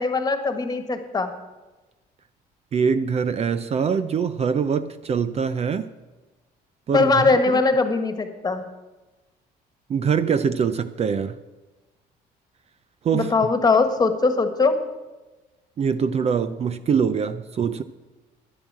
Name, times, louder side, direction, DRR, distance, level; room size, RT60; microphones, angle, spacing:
voice 1, 0.0-1.3 6.9-8.6 13.1-14.7, left 3 dB, 25° left, 8 dB, 1.5 m, -21 dB
voice 2, 2.7-5.9 6.9-7.1 7.5-7.6 9.9-11.4 13.0-13.3 15.8-17.8, right 6 dB, 40° right, 12 dB, 0.6 m, -23 dB
11.0 x 10.5 x 7.5 m, 1.2 s
cardioid pair, 110°, 17 cm